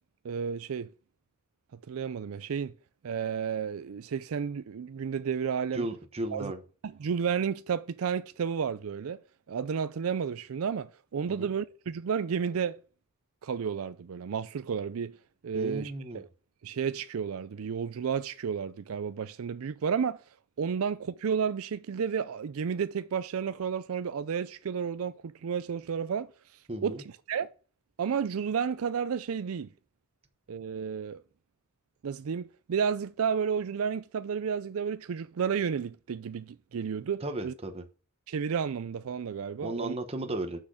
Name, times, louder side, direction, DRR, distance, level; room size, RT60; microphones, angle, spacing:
voice 1, 0.2-0.9 1.9-2.7 3.0-5.8 6.3-6.5 6.8-9.2 9.5-12.8 13.4-15.2 15.4-16.3 16.6-20.2 20.6-26.3 26.8-27.0 27.3-27.5 28.0-29.7 30.5-31.2 32.0-37.5 38.3-40.0, right 6 dB, 75° right, 0.4 m, -32 dB
voice 2, 5.7-6.6 11.3-11.5 15.5-16.2 26.7-27.0 37.2-37.8 39.6-40.6, right 1 dB, 30° right, 1.1 m, -35 dB
6.2 x 6.0 x 6.5 m
head